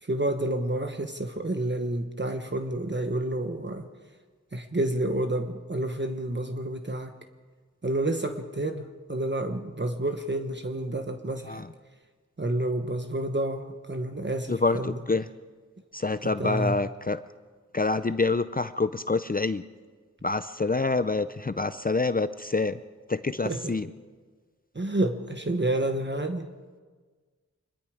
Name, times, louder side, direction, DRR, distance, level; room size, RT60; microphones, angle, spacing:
voice 1, 0.0-3.9 4.5-7.1 7.8-11.6 12.4-15.0 16.4-16.8 23.4-23.7 24.7-26.5, right 1 dB, 35° right, 6 dB, 1.2 m, -29 dB
voice 2, 14.5-15.2 15.9-17.2 17.7-19.6 20.2-22.8 23.1-23.9, left 3 dB, 30° left, 12 dB, 0.5 m, -27 dB
25.5 x 21.0 x 5.0 m, 1.5 s
wide cardioid pair, 70°, 30 cm